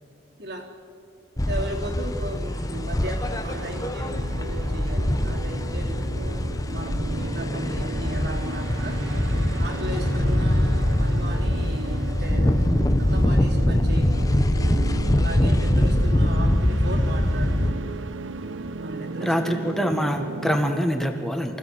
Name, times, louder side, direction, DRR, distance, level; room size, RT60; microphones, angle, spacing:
voice 1, 0.4-0.7 1.4-9.0 9.6-12.7 13.0-14.5 15.1-18.0 18.8-19.7, right 1 dB, 60° right, 1 dB, 3.2 m, -36 dB
sound 1, 1.4-17.7, left 1 dB, 20° left, 0.8 m, -23 dB
sound 2, 3.2-20.8, right 3 dB, 80° right, 0.8 m, -36 dB
voice 2, 19.2-21.6, equal, ahead, 4 dB, 1.5 m, -25 dB
24.5 x 16.0 x 7.6 m, 2.5 s
head